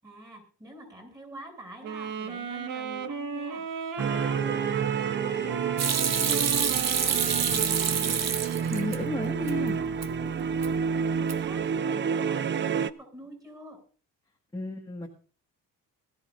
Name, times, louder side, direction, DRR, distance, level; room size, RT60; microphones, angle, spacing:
voice 1, 0.0-3.7 4.0-8.0 8.6-10.6 10.9-13.8, right 1 dB, 10° right, 3 dB, 7.0 m, -47 dB
sound 1, 1.8-8.4, right 5 dB, 65° right, 1.7 m, -35 dB
sound 2, 4.0-12.9, right 7 dB, 35° right, 0.5 m, -29 dB
Hands / Sink (filling or washing), 5.8-9.0 9.3-10.1 10.4-10.9 11.2-11.6, right 7 dB, 50° right, 1.2 m, -27 dB
voice 2, 8.7-9.7 14.5-15.1, left 2 dB, 10° left, 0 dB, 1.7 m, -33 dB
20.5 x 13.5 x 2.6 m, 0.41 s
cardioid pair, 135°, 35 cm